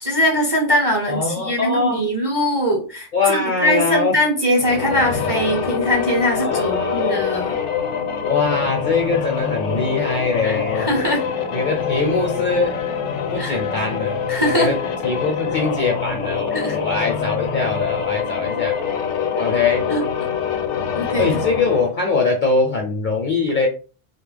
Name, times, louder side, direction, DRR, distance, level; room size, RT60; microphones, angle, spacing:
voice 1, 0.0-7.6 10.4-11.3 13.4-13.6 14.3-14.7 16.5-16.8 19.4-19.5 19.9-20.0 21.0-21.3, equal, 30° right, -2 dB, 0.5 m, -21 dB
voice 2, 1.1-2.0 3.1-4.2 6.4-7.2 8.2-10.9 11.5-12.8 13.3-14.2 14.5-14.8 15.0-18.8 19.4-19.8 21.2-23.7, left 4 dB, 60° left, 1 dB, 0.5 m, -22 dB
sound 1, 4.5-22.0, left 7 dB, 75° left, 0.9 m, -25 dB
2.3 x 2.0 x 3.2 m, 0.35 s
omnidirectional pair, 1.2 m